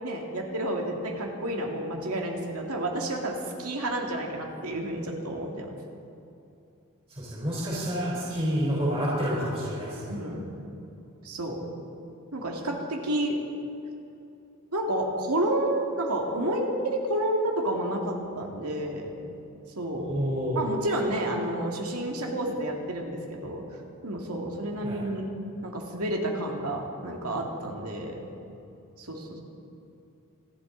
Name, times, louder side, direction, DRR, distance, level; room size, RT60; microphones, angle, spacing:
voice 1, 0.0-5.7 10.1-10.6 11.2-11.6 12.3-13.4 14.7-19.1 19.8-20.1 20.6-23.6 24.0-25.3 25.6-28.2 29.0-29.4, right 1 dB, 85° right, 1 dB, 2.2 m, -30 dB
voice 2, 7.1-10.2 20.0-20.6 24.8-25.0, equal, 25° right, -7 dB, 3.9 m, -29 dB
27.0 x 11.5 x 3.9 m, 2.8 s
head